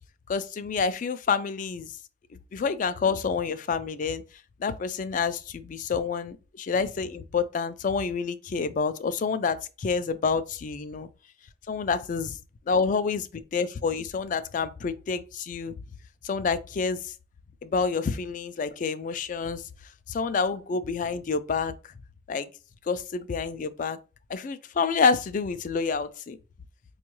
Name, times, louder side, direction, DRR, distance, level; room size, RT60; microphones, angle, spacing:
voice 1, 0.3-1.9 2.5-4.2 4.6-11.1 11.7-12.3 12.7-15.8 16.2-17.1 17.6-19.6 20.1-21.7 22.3-22.5 22.9-24.0 24.3-26.4, left 5 dB, 45° left, 0.3 m, -28 dB
5.2 x 2.3 x 3.0 m
head